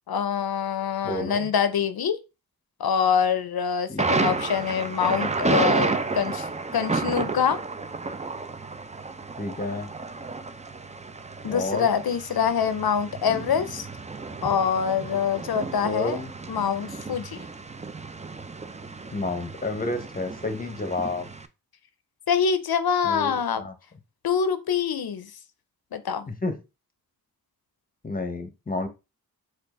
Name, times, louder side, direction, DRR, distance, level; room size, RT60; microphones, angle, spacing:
voice 1, 0.1-2.2 2.8-7.6 11.4-13.9 14.4-16.2 16.5-17.4 22.3-23.6 24.2-25.3 25.9-26.3, left 7 dB, 80° left, 0.6 m, -25 dB
voice 2, 1.0-1.5 3.9-4.4 9.4-9.9 11.5-11.9 15.8-16.3 19.1-21.3 23.0-23.7 26.3-26.6 28.0-28.9, left 2 dB, 25° left, 0.8 m, -30 dB
Thunder, 4.0-21.5, right 3 dB, 20° right, 0.4 m, -31 dB
4.5 x 2.5 x 4.1 m
wide cardioid pair, 65°, 37 cm